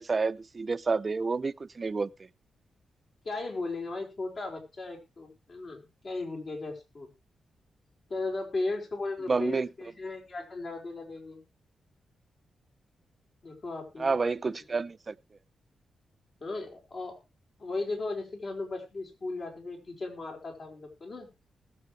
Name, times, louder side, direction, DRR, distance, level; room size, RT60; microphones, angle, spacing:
voice 1, 0.0-2.1 9.3-9.7 14.0-15.1, right 4 dB, 35° right, 0.6 m, -29 dB
voice 2, 3.2-7.1 8.1-11.4 13.4-14.2 14.4-14.5 16.4-17.2 17.6-21.3, left 3 dB, 55° left, 4.9 m, -36 dB
20.0 x 7.7 x 3.2 m
cardioid pair, 75°, 0 cm